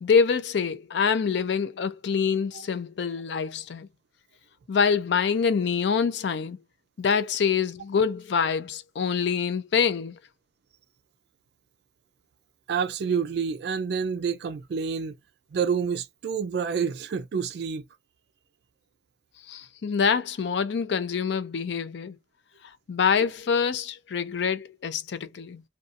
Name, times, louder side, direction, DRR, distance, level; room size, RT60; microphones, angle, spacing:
voice 1, 0.0-3.9 4.7-6.6 7.0-10.2 19.5-22.2 22.9-25.6, left 6 dB, 65° left, 0.4 m, -25 dB
voice 2, 12.7-15.1 15.5-17.8, right 6 dB, 60° right, 0.3 m, -28 dB
2.6 x 2.2 x 2.5 m
head